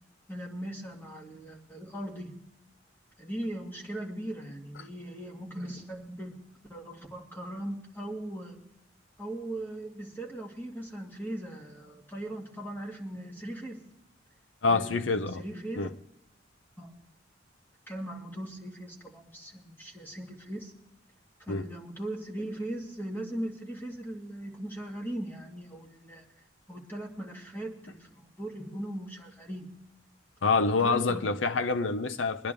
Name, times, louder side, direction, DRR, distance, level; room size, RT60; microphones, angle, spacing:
voice 1, 0.3-2.5 3.2-6.4 6.7-8.6 9.2-13.8 14.7-15.9 16.8-16.9 17.9-20.7 21.4-26.2 26.7-29.7 30.5-31.2, right 1 dB, 10° left, 2.3 m, -39 dB
voice 2, 14.6-15.4 15.8-15.9 21.5-21.6 30.4-32.5, left 4 dB, 80° left, 0.7 m, -26 dB
22.5 x 10.5 x 3.4 m
head